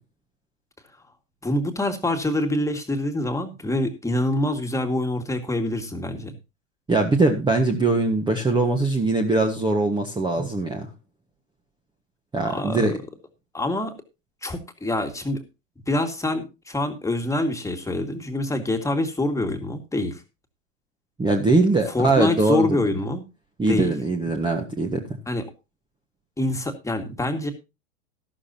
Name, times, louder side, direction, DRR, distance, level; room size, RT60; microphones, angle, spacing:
voice 1, 1.4-6.3 10.4-10.5 12.4-12.9 13.5-13.9 14.4-15.4 15.9-20.2 21.9-23.2 23.7-23.9 25.3-25.5 26.4-27.5, left 1 dB, 5° left, 5 dB, 2.1 m, -26 dB
voice 2, 6.9-10.9 12.3-13.0 21.2-22.8 23.6-25.0, right 3 dB, 10° right, 3 dB, 1.5 m, -21 dB
13.0 x 12.5 x 2.9 m, 0.27 s
hypercardioid pair, 115°, 40 cm